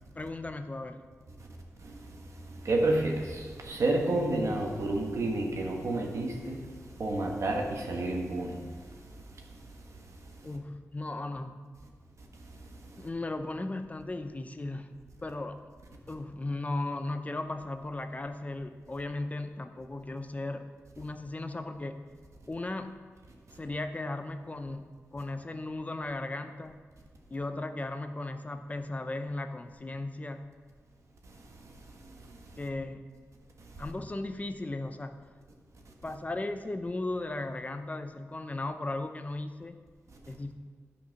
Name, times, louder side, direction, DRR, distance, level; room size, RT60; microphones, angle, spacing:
voice 1, 0.1-1.0 10.4-11.7 13.0-14.9 15.2-15.6 16.1-22.0 22.5-22.9 23.6-24.8 25.1-26.8 27.3-30.5 32.6-33.1 33.8-35.2 36.0-39.8 40.3-40.5, left 2 dB, 30° left, 8 dB, 0.6 m, -36 dB
voice 2, 2.6-6.6 7.0-8.6, right 2 dB, 70° right, 1 dB, 1.4 m, -29 dB
10.5 x 5.2 x 5.8 m, 1.5 s
wide cardioid pair, 85°, 5 cm